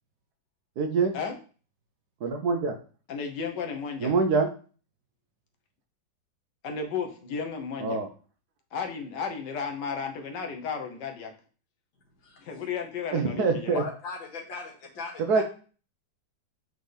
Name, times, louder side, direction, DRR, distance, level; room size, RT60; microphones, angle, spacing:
voice 1, 0.8-1.1 2.2-2.8 4.0-4.5 7.8-8.1 13.1-13.8 15.2-15.4, right 4 dB, 65° right, 6 dB, 1.2 m, -24 dB
voice 2, 3.1-4.2 6.6-8.0 8.7-11.3 12.4-13.8, left 6 dB, 70° left, 4 dB, 1.6 m, -34 dB
voice 3, 12.2-12.7 13.7-15.4, left 4 dB, 85° left, 0 dB, 2.4 m, -38 dB
7.9 x 4.0 x 3.3 m, 0.39 s
omnidirectional pair, 2.0 m